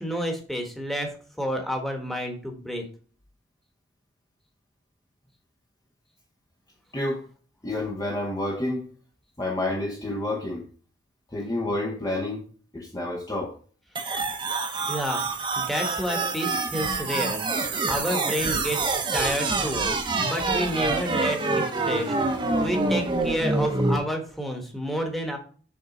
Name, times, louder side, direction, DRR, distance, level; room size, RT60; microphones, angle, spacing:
voice 1, 0.0-2.9 14.9-15.2 15.6-17.4 17.7-19.8 20.2-25.4, equal, ahead, 1.2 m, -30 dB
voice 2, 6.9-7.2 7.6-8.9 9.4-10.6 11.3-12.4 12.7-13.5, left 1 dB, 20° left, 0.8 m, -29 dB
sound 1, 14.0-24.0, right 3 dB, 25° right, 0.8 m, -26 dB
6.8 x 3.8 x 5.0 m
head